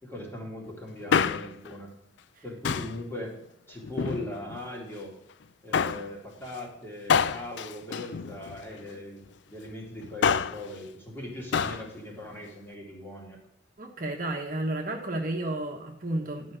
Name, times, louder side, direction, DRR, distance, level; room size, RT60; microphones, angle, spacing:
voice 1, 0.0-1.9 2.4-3.4 3.7-5.1 5.6-13.4, left 1 dB, 10° left, -2 dB, 2.5 m, -39 dB
Male speech man speaking, 0.9-1.7 2.6-3.0 3.8-4.6 5.7-6.1 7.1-8.8 10.0-10.7 11.5-11.9 12.1-12.2, left 6 dB, 70° left, 0.4 m, -27 dB
voice 2, 13.8-16.6, right 1 dB, 45° right, 2 dB, 1.2 m, -32 dB
11.5 x 5.5 x 6.4 m, 0.81 s
head